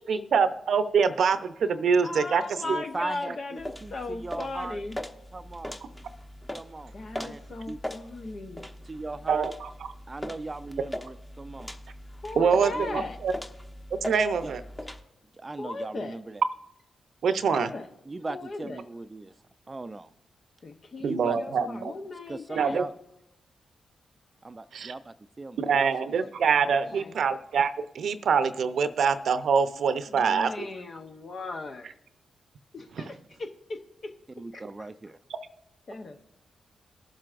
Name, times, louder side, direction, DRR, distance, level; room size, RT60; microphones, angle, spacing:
voice 1, 0.1-2.6 9.3-9.7 12.4-13.3 14.0-14.6 17.2-17.7 21.0-21.9 22.6-22.8 24.7-24.9 25.6-30.5 33.0-33.1, right 6 dB, 70° right, 0.7 m, -25 dB
voice 2, 2.0-5.0 6.9-8.7 12.2-13.2 15.6-16.2 17.4-17.8 18.3-18.8 20.6-22.8 26.6-27.1 30.1-31.9 32.7-34.1 34.5-34.9 35.9-36.2, left 2 dB, 55° left, 0.8 m, -37 dB
voice 3, 2.6-4.8 5.3-5.8 6.5-7.4 7.7-7.8 8.9-9.4 10.1-11.7 12.7-13.0 14.4-14.5 15.4-16.4 18.1-19.3 19.7-20.1 21.0-21.9 22.3-22.9 24.4-25.9 34.4-35.2, right 2 dB, 30° right, 0.4 m, -38 dB
sound 1, 3.6-15.0, left 1 dB, 15° left, 1.0 m, -40 dB
19.5 x 7.5 x 2.5 m
supercardioid pair, 45°, 0 cm